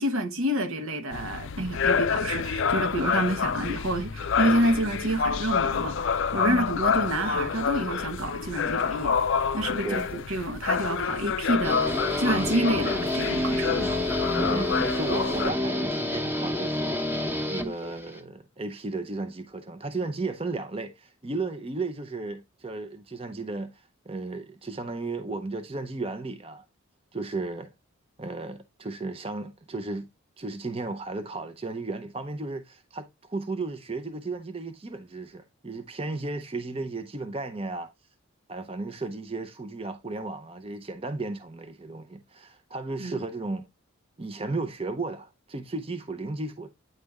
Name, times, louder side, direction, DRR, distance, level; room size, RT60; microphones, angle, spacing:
voice 1, 0.0-9.2 9.5-13.9 43.0-43.2, right 1 dB, 80° right, 1.1 m, -28 dB
sound 1, 1.1-15.5, left 6 dB, 60° left, 0.4 m, -28 dB
voice 2, 6.4-6.8 9.8-10.1 14.4-17.0 17.5-26.6 27.1-27.7 28.2-30.1 30.4-37.9 38.5-43.7 44.2-46.7, right 3 dB, 25° right, 0.6 m, -34 dB
Guitar, 11.6-18.2, left 1 dB, 10° right, 0.9 m, -28 dB
9.3 x 3.3 x 3.5 m
head